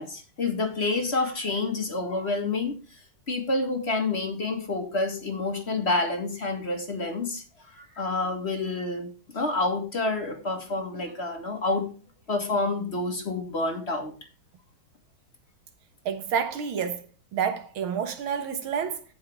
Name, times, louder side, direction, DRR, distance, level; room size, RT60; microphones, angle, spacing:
voice 1, 0.0-2.8 3.3-7.4 7.8-11.9 12.3-14.1, left 3 dB, 35° left, 2.0 m, -28 dB
voice 2, 16.1-17.1 17.3-19.0, right 7 dB, 85° right, 2.1 m, -29 dB
15.5 x 5.8 x 3.5 m
omnidirectional pair, 2.2 m